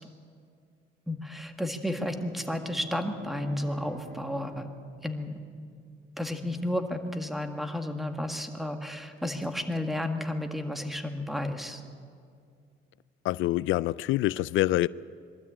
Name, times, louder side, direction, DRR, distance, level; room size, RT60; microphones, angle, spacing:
voice 1, 1.1-4.7 5.0-5.3 6.2-11.8, left 1 dB, ahead, 1.8 m, -32 dB
Bowed string instrument, 1.7-6.3, right 2 dB, 70° right, 2.8 m, -49 dB
voice 2, 13.2-14.9, left 16 dB, 85° left, 0.4 m, -26 dB
23.0 x 13.0 x 8.7 m
cardioid pair, 90°, 20 cm